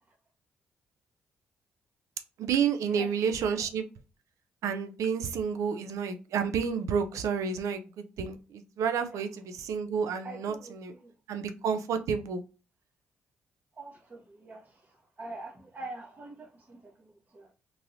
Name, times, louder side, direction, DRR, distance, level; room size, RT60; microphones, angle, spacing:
voice 1, 2.4-3.9 4.6-10.9 11.3-12.4, right 6 dB, 70° right, 0.5 m, -30 dB
voice 2, 10.2-11.1 13.8-17.5, right 2 dB, 30° right, 0.8 m, -45 dB
3.0 x 2.6 x 2.6 m
hypercardioid pair, 45°, 6 cm